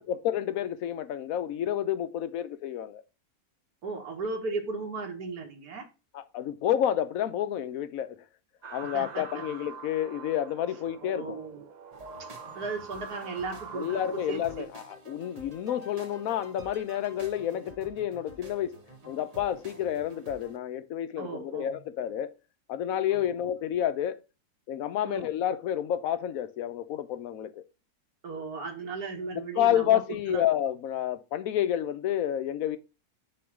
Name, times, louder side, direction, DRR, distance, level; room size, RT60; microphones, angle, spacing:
voice 1, 0.0-3.0 6.1-8.2 8.7-11.4 13.7-18.7 19.1-22.3 22.7-24.2 24.7-27.6 29.3-32.8, left 11 dB, 70° left, 1.1 m, -30 dB
voice 2, 3.8-5.9 8.9-9.3 11.0-11.7 12.2-12.3 12.5-14.0 14.3-14.7 21.2-21.8 23.1-23.4 25.0-25.3 28.2-30.4, right 4 dB, 85° right, 1.7 m, -36 dB
sound 1, 8.6-14.6, right 6 dB, 60° right, 0.4 m, -45 dB
sound 2, 11.9-20.6, equal, 30° right, 1.0 m, -49 dB
5.3 x 3.8 x 5.9 m
omnidirectional pair, 1.6 m